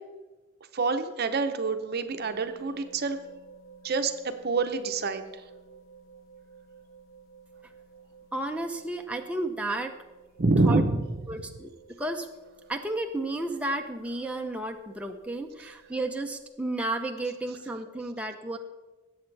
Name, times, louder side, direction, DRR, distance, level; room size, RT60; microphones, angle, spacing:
voice 1, 0.7-3.2 3.8-5.3 10.4-11.0, right 3 dB, 50° right, 8 dB, 0.7 m, -26 dB
sound 1, 2.1-16.4, right 5 dB, 75° left, 1.3 m, -54 dB
voice 2, 8.3-9.9 10.6-10.8 11.3-11.7 12.0-12.3 12.7-18.6, right 2 dB, 5° right, 3 dB, 0.6 m, -32 dB
18.5 x 8.0 x 3.3 m, 1.2 s
head